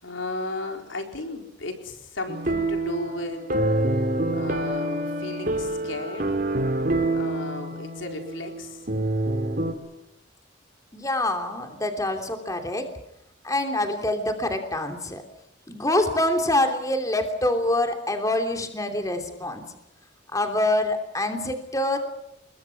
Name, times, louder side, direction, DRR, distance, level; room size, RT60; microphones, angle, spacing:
voice 1, 0.0-3.6 4.3-6.4 7.1-8.9, left 2 dB, 80° left, 4 dB, 4.5 m, -34 dB
sound 1, 2.3-9.7, right 1 dB, 45° right, 3.2 m, -26 dB
voice 2, 10.9-12.8 13.4-15.2 15.7-19.6 20.3-22.0, left 1 dB, 15° left, 5 dB, 3.0 m, -25 dB
29.5 x 21.5 x 5.9 m, 0.80 s
head